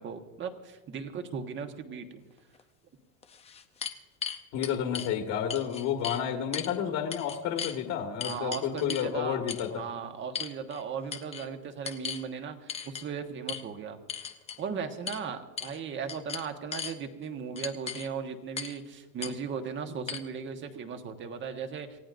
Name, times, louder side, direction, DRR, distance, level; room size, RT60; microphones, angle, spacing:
voice 1, 0.0-2.2 8.2-9.4 9.7-14.0 14.6-22.0, right 6 dB, 30° right, 6 dB, 1.4 m, -37 dB
sound 1, 2.6-2.7 3.2-5.1 5.5-6.2 6.5-6.7 7.1-7.8 8.2-9.1 9.5-9.7 10.3-10.8 11.1-11.5 11.8-12.2 12.7-13.0 13.5-13.6 14.1-14.6 15.1-15.2 15.6-15.8 16.1-16.9 17.6-18.1 18.6-18.8 19.2-19.3 20.1-20.2, left 7 dB, 15° left, 0.6 m, -37 dB
voice 2, 4.5-9.7, left 9 dB, 50° left, 2 dB, 1.9 m, -31 dB
27.5 x 16.0 x 2.6 m, 1.2 s
supercardioid pair, 150°, 40 cm